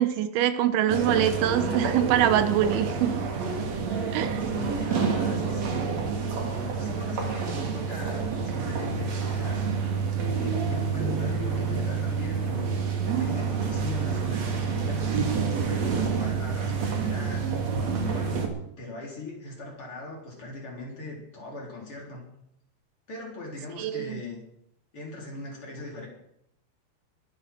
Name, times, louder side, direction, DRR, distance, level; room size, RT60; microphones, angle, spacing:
voice 1, 0.0-3.2 4.1-4.4 23.8-24.2, right 11 dB, 85° right, 10 dB, 3.3 m, -24 dB
sound 1, 0.9-18.5, right 5 dB, 50° right, 2.5 m, -28 dB
voice 2, 4.4-5.9 6.3-9.7 10.2-12.6 13.0-15.2 15.7-18.4 18.8-22.2 23.1-24.4 24.9-26.1, left 2 dB, 30° left, -2 dB, 4.3 m, -39 dB
22.5 x 7.9 x 6.1 m, 0.77 s
omnidirectional pair, 5.2 m